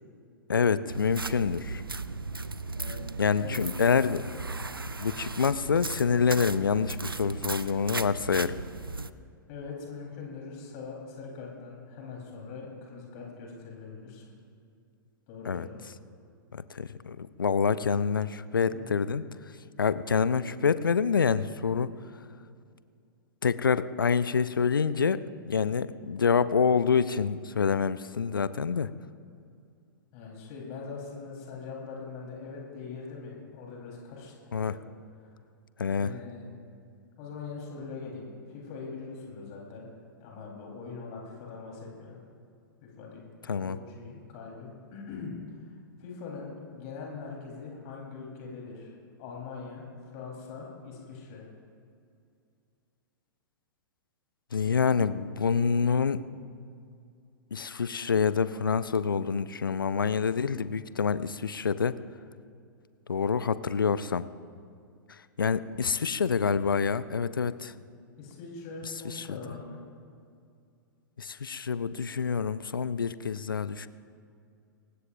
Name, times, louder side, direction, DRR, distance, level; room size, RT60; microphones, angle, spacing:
voice 1, 0.5-1.8 3.2-4.4 5.0-8.5 15.4-15.7 16.5-19.2 19.8-21.9 23.4-28.9 34.5-34.7 35.8-36.1 43.5-43.8 54.5-56.2 57.5-62.0 63.1-64.3 65.4-67.7 69.0-69.4 71.2-73.9, left 6 dB, 70° left, 15 dB, 0.6 m, -27 dB
sound 1, 0.9-9.1, right 3 dB, 85° right, 0.5 m, -37 dB
voice 2, 2.7-3.1 3.4-3.6 9.5-14.3 15.3-15.8 18.6-18.9 30.1-34.8 35.2-35.4 36.0-36.5 37.2-39.9 40.2-42.2 42.8-43.2 43.6-48.9 49.2-51.5 54.6-54.9 68.2-69.8, left 4 dB, 40° left, -2 dB, 4.0 m, -42 dB
23.5 x 19.5 x 2.6 m, 2.4 s
figure-of-eight pair, 105°, 11 cm